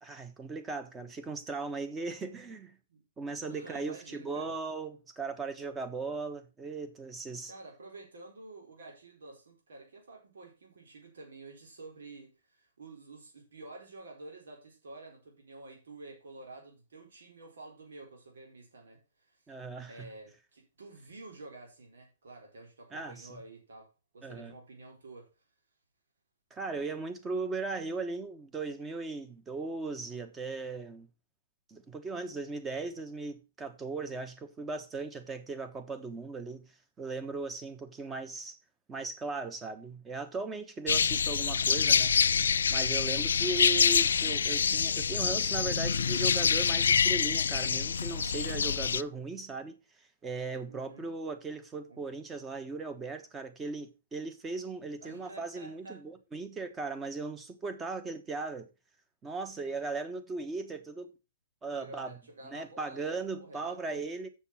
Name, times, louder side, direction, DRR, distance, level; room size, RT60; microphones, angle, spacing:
voice 1, 0.0-2.7 3.2-7.5 19.5-20.1 22.9-23.3 24.2-24.5 26.5-31.1 31.7-36.6 37.0-38.6 38.9-42.2 42.7-49.8 50.2-58.7 59.2-61.1 61.6-62.1 62.5-64.3, right 3 dB, 15° right, 1.3 m, -38 dB
voice 2, 3.4-4.5 7.4-19.4 19.9-25.4 43.0-43.3 50.6-51.1 51.9-52.0 55.0-56.0 61.7-64.0, right 2 dB, 85° right, 4.1 m, -50 dB
sound 1, 40.9-49.0, left 6 dB, 90° left, 0.4 m, -26 dB
7.1 x 7.1 x 5.7 m
hypercardioid pair, 150°, 0 cm